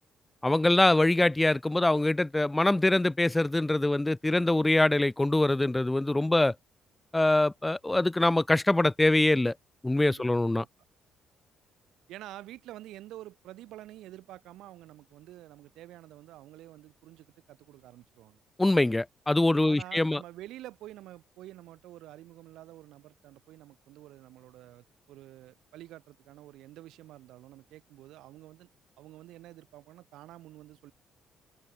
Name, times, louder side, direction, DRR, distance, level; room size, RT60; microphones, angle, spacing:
voice 1, 0.4-6.5 7.1-9.5 9.8-10.6 18.6-20.2, left 2 dB, 10° left, 0.4 m, -24 dB
voice 2, 12.1-18.4 19.6-28.7 29.0-30.9, right 15 dB, 90° right, 2.6 m, -48 dB
open air
cardioid pair, 145°, 0 cm